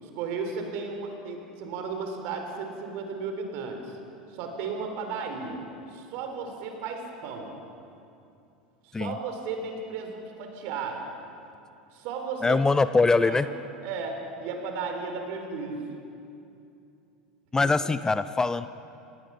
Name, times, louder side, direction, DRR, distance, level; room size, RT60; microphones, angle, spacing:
voice 1, 0.0-4.0 4.3-5.6 5.9-7.5 8.8-11.0 11.9-12.6 13.2-13.5 13.8-15.8 17.6-17.7, right 5 dB, 55° right, 4 dB, 3.9 m, -34 dB
voice 2, 12.4-13.5 17.5-18.7, left 3 dB, 15° left, 13 dB, 0.6 m, -22 dB
27.5 x 19.0 x 5.8 m, 2.7 s
figure-of-eight pair, 80°, 4 cm